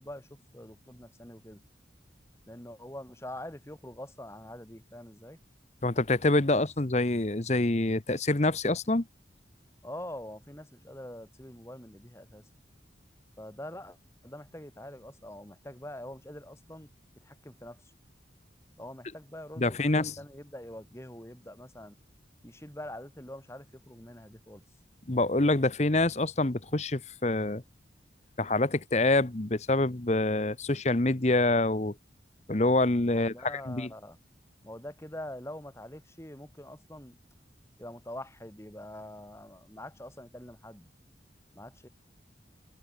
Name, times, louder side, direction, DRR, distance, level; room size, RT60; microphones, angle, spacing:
voice 1, 0.0-1.6 2.5-5.4 6.5-6.6 9.8-12.5 13.4-14.0 14.2-16.9 17.2-17.8 18.8-22.0 22.4-24.6 33.1-34.2 34.6-37.2 37.8-40.9 41.5-41.9, left 1 dB, 15° left, 2.6 m, -44 dB
voice 2, 5.8-9.0 19.6-20.1 25.1-27.6 28.4-31.9 32.5-33.9, left 2 dB, 35° left, 1.1 m, -26 dB
head